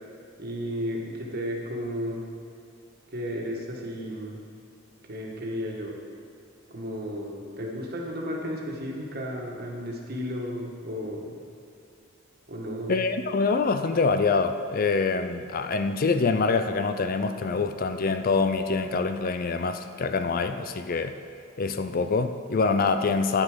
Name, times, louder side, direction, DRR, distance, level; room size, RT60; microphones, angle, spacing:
voice 1, 0.4-2.2 3.1-4.4 5.0-6.0 6.7-11.3 12.5-13.0, equal, 50° right, -1 dB, 1.7 m, -33 dB
voice 2, 12.9-21.1 21.6-23.4, left 4 dB, 45° left, 9 dB, 0.4 m, -25 dB
9.8 x 9.7 x 5.1 m, 2.5 s
head